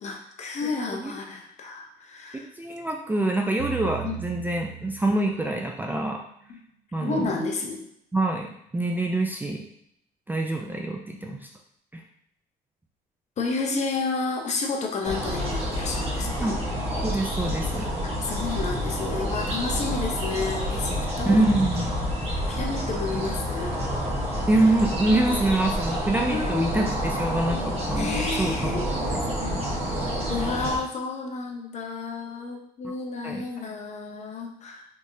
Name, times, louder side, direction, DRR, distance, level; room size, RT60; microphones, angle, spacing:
voice 1, 0.0-2.8 4.0-4.2 6.5-6.6 7.0-7.9 13.4-16.6 18.0-21.4 22.5-23.8 26.2-26.8 27.9-28.9 30.3-34.9, left 4 dB, 40° left, 2 dB, 0.7 m, -31 dB
voice 2, 2.3-6.2 6.9-7.3 8.1-9.6 10.3-11.5 11.9-12.0 16.4-16.5 17.0-17.9 21.3-21.9 24.5-29.1 29.4-29.5 29.8-30.1 32.8-32.9 33.2-33.4, right 2 dB, 10° right, 1 dB, 0.3 m, -25 dB
sound 1, 3.6-5.8, right 18 dB, 85° right, 0.4 m, -37 dB
sound 2, 15.0-30.8, equal, 35° right, 1.3 m, -28 dB
3.4 x 3.2 x 2.7 m, 0.73 s
cardioid pair, 110°, 17 cm